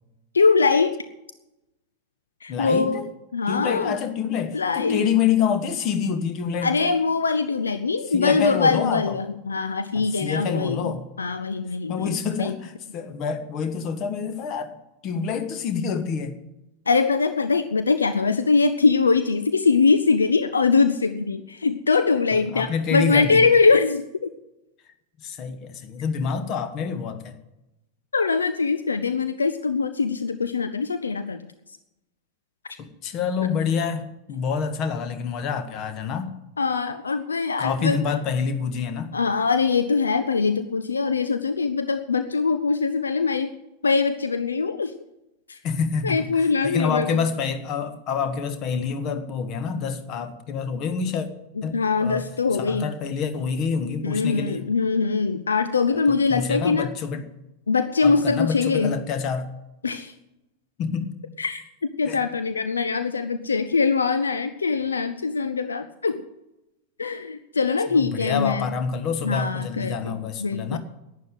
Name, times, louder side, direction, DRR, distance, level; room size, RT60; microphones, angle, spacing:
voice 1, 0.3-1.0 2.4-3.0 3.3-4.0 4.5-5.0 6.6-10.9 11.2-12.5 16.9-24.3 28.1-31.4 36.6-38.0 39.1-43.6 43.8-44.9 45.5-45.6 46.0-47.2 51.7-52.9 54.0-56.9 57.7-58.9 59.8-60.1 61.4-61.6 62.0-66.2 67.0-68.7 69.2-70.8, left 4 dB, 75° left, 10 dB, 0.6 m, -22 dB
voice 2, 2.5-3.1 3.5-7.0 8.1-9.1 9.9-11.1 11.9-14.8 15.0-16.4 22.5-23.4 25.2-27.4 32.8-36.3 37.6-39.1 45.6-51.3 51.6-52.3 52.6-54.6 56.3-57.2 58.0-59.5 60.8-61.1 62.0-62.3 67.9-70.8, left 6 dB, 35° left, 10 dB, 1.5 m, -27 dB
11.5 x 9.5 x 9.2 m, 0.94 s
figure-of-eight pair, 90°, 0 cm